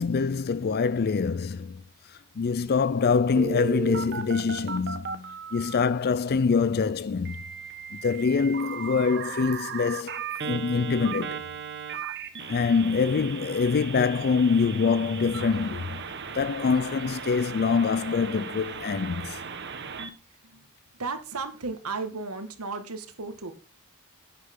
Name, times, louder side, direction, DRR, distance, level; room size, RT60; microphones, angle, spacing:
voice 1, 0.0-7.4 7.9-11.4 12.5-16.0 16.3-19.4, left 5 dB, 45° left, 0.4 m, -25 dB
Telephone, 3.4-5.8 7.3-20.1, right 5 dB, 50° right, 1.3 m, -36 dB
voice 2, 21.0-23.5, right 4 dB, 75° right, 1.9 m, -34 dB
11.5 x 9.6 x 3.7 m
head